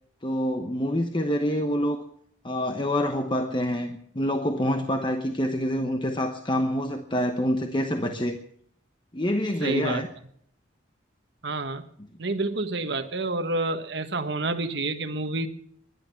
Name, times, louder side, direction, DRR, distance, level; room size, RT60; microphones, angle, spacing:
voice 1, 0.2-2.0 2.4-8.4 9.1-10.1, equal, 25° left, 6 dB, 1.0 m, -26 dB
voice 2, 9.6-10.0 11.4-11.8 12.2-15.5, right 2 dB, 60° right, 7 dB, 1.4 m, -28 dB
20.5 x 11.0 x 5.8 m, 0.66 s
head